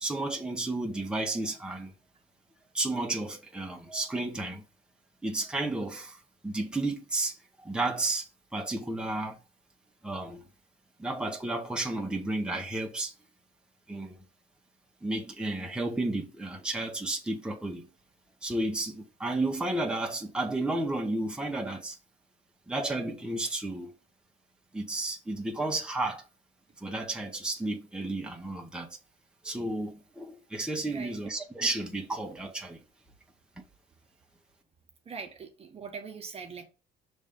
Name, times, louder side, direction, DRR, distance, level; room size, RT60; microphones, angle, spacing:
voice 1, 0.0-1.9 2.7-4.6 5.2-6.2 6.4-9.4 10.0-10.4 11.0-13.1 13.9-14.2 15.0-17.9 18.4-22.0 22.7-23.9 24.7-26.2 26.8-29.0 29.4-32.8 33.6-33.7, right 2 dB, 5° right, 1.2 m, -32 dB
voice 2, 30.9-31.2 35.1-36.6, right 5 dB, 35° right, 1.2 m, -41 dB
6.2 x 3.3 x 5.3 m
cardioid pair, 110°, 17 cm